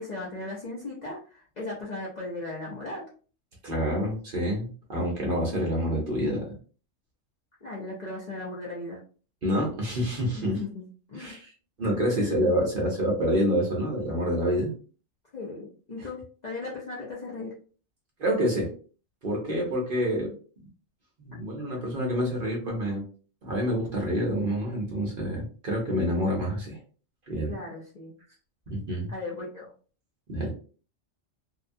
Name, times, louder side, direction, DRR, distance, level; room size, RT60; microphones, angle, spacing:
voice 1, 0.0-3.1 7.6-9.0 10.3-11.3 12.2-12.3 15.3-17.5 27.5-28.1 29.1-29.7, left 2 dB, 45° left, -5 dB, 0.6 m, -37 dB
voice 2, 3.6-6.5 9.4-10.6 11.2-11.5 11.8-14.7 18.2-18.7 19.2-20.3 21.2-23.0 23.4-26.8 27.3-27.5 28.7-29.1 30.3-30.5, equal, 50° right, -1 dB, 0.8 m, -27 dB
2.8 x 2.2 x 2.5 m, 0.39 s
omnidirectional pair, 1.3 m